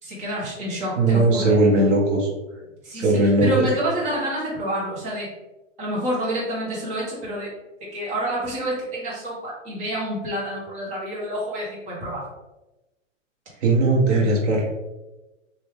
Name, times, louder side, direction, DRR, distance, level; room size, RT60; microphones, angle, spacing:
voice 1, 0.0-1.6 2.8-5.3 5.8-7.5 7.8-12.2 13.5-13.6, right 1 dB, 20° right, -6 dB, 1.1 m, -28 dB
voice 2, 1.0-2.3 2.9-3.6 13.6-14.7, right 2 dB, 65° right, -2 dB, 1.2 m, -18 dB
3.2 x 2.6 x 3.4 m, 1.0 s
hypercardioid pair, 155°, 39 cm